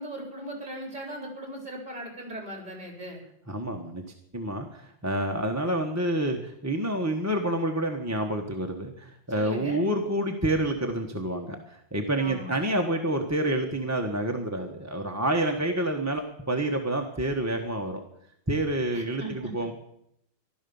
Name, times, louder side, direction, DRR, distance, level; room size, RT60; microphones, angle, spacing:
voice 1, 0.0-3.2 9.3-9.8 12.2-12.6 15.3-15.7 18.9-19.5, right 1 dB, 45° right, 2 dB, 4.3 m, -39 dB
voice 2, 3.5-4.0 4.3-18.0 18.5-19.7, right 1 dB, 15° right, 2 dB, 1.3 m, -28 dB
15.5 x 12.0 x 7.1 m, 0.75 s
omnidirectional pair, 1.1 m